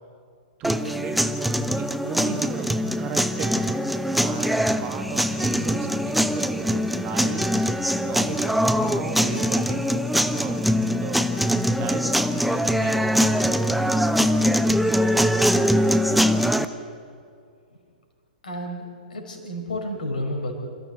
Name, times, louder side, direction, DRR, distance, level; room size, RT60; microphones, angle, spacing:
sound 1, 0.6-16.7, equal, ahead, 0.8 m, -22 dB
voice 1, 0.6-1.2 1.8-3.8 4.2-7.7 7.9-10.6 10.9-11.2 11.8-14.2, right 7 dB, 30° right, 6 dB, 2.0 m, -36 dB
voice 2, 18.4-20.5, left 1 dB, 65° left, 3 dB, 4.8 m, -31 dB
28.0 x 14.5 x 7.8 m, 2.3 s
figure-of-eight pair, 115°, 5 cm